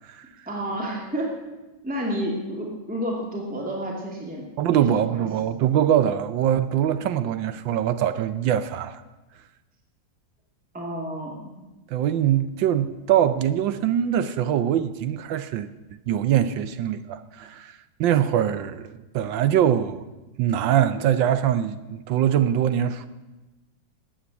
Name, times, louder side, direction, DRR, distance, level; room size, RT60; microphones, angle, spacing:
voice 1, 0.5-1.4 1.8-5.2 10.7-11.5, equal, 5° right, 2.3 m, -30 dB
voice 2, 4.6-9.0 11.9-15.7 16.1-20.1 20.4-23.1, right 10 dB, 70° right, 1.3 m, -23 dB
13.0 x 8.8 x 8.3 m
omnidirectional pair, 2.2 m